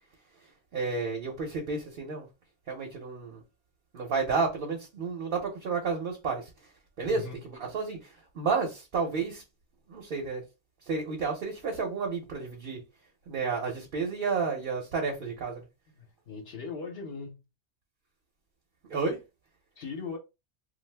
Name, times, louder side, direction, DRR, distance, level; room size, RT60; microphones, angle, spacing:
voice 1, 0.7-2.3 2.7-3.4 3.9-6.5 7.0-8.1 8.3-9.4 9.9-10.4 10.9-12.8 13.3-15.6 18.9-19.2, right 4 dB, 55° right, 0.9 m, -31 dB
voice 2, 7.0-7.4 16.0-17.4 19.8-20.2, left 5 dB, 65° left, 0.9 m, -39 dB
2.5 x 2.3 x 3.3 m
omnidirectional pair, 1.2 m